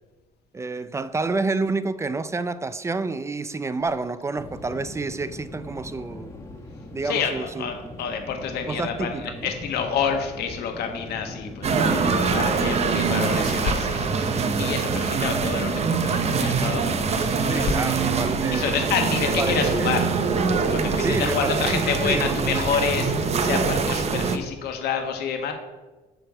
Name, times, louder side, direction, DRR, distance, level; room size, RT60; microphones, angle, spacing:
voice 1, 0.5-6.3 6.9-7.7 8.7-9.5 17.5-18.8 19.2-20.0 21.0-23.0, right 3 dB, 15° right, 0.4 m, -29 dB
sound 1, 4.3-23.7, left 1 dB, 15° left, 1.5 m, -41 dB
voice 2, 7.0-18.0 18.5-20.1 20.7-25.5, left 6 dB, 75° left, 1.4 m, -28 dB
sound 2, 11.6-24.4, right 5 dB, 40° right, 0.8 m, -24 dB
9.9 x 3.4 x 7.0 m
cardioid pair, 110°, 17 cm